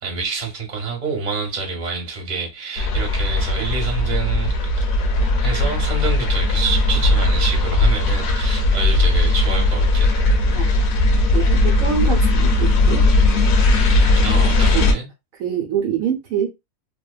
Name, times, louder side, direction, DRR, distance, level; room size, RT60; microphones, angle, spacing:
voice 1, 0.0-4.9 5.4-10.2 14.2-15.1, right 4 dB, 35° right, 0.9 m, -27 dB
sound 1, 2.8-14.9, left 2 dB, 75° left, 1.0 m, -18 dB
voice 2, 11.3-13.0 14.7-14.9 15.4-16.5, right 8 dB, 70° right, 0.9 m, -24 dB
2.7 x 2.1 x 2.3 m
omnidirectional pair, 1.6 m